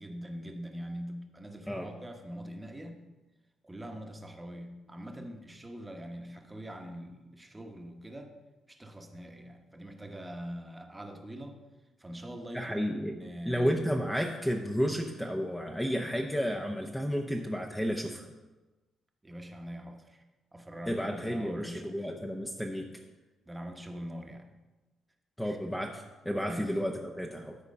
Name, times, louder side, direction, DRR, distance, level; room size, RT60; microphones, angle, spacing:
voice 1, 0.0-3.0 3.6-8.3 8.7-11.6 12.0-13.9 19.2-20.2 20.5-22.1 23.5-24.5 25.4-25.6 26.5-26.7, equal, 15° right, 4 dB, 1.1 m, -43 dB
voice 2, 12.5-13.2 13.5-18.3 20.9-22.9 25.4-27.6, equal, 5° left, 2 dB, 0.8 m, -32 dB
12.5 x 4.4 x 5.3 m, 1.1 s
cardioid pair, 90°, 0 cm